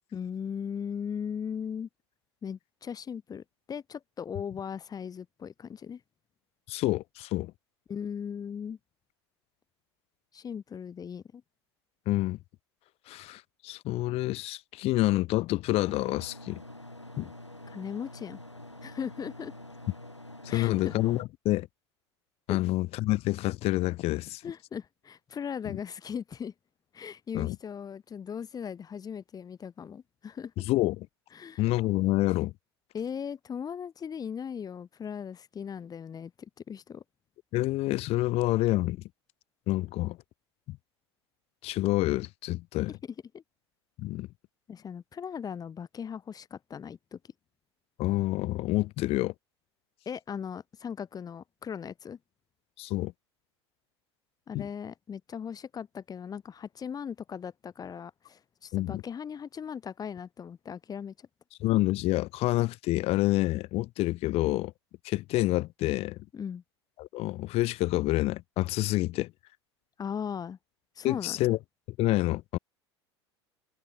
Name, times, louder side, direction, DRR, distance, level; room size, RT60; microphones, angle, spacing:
voice 1, 0.1-1.9 2.4-6.0 7.9-8.8 10.3-11.4 17.7-18.4 18.8-19.5 20.5-20.9 22.5-22.6 24.4-26.5 26.9-30.5 31.3-31.6 32.9-37.0 43.3-43.4 44.7-47.2 50.0-52.2 54.5-61.3 66.3-66.6 70.0-70.6 70.9-71.4, left 7 dB, 25° left, 6.9 m, -38 dB
voice 2, 6.7-7.5 12.1-12.4 13.1-16.6 17.2-17.3 20.4-21.7 22.5-24.4 25.6-25.8 27.3-27.6 30.6-31.1 31.6-32.5 37.5-39.0 39.7-40.2 40.7-40.8 41.6-42.9 44.0-44.3 48.0-49.3 52.8-53.1 54.5-54.7 58.7-59.0 61.6-64.7 65.0-66.2 67.0-69.3 71.0-71.6 72.0-72.6, left 18 dB, 45° left, 2.8 m, -28 dB
sound 1, 15.8-21.2, left 1 dB, 90° left, 3.2 m, -46 dB
figure-of-eight pair, 75°, 14 cm